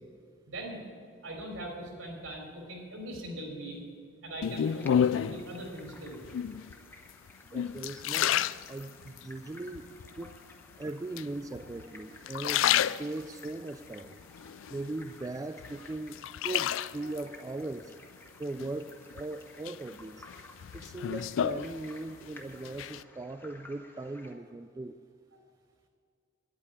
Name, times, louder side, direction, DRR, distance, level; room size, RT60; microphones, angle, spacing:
voice 1, 0.4-0.8 1.2-3.8 4.2-6.2 10.1-10.3 11.6-11.7 13.6-13.7 15.7-15.8 17.0-17.1, right 1 dB, 80° right, 1 dB, 3.3 m, -41 dB
sound 1, 4.4-5.5 6.2-6.7 7.3-9.2 9.7-10.4 11.2-11.8 12.2-13.5 14.0-15.2 15.6-17.2 18.6-19.2 19.6-22.3 22.5-23.0, left 9 dB, 75° left, 0.3 m, -30 dB
sound 2, 4.6-24.3, left 2 dB, 10° left, 1.0 m, -55 dB
voice 2, 7.5-8.4 8.7-9.9 10.2-10.4 10.8-12.7 13.0-14.2 14.7-16.2 16.4-17.9 18.4-20.2 20.7-25.0, right 2 dB, 15° right, 10 dB, 0.3 m, -39 dB
10.0 x 8.8 x 9.7 m, 2.3 s
head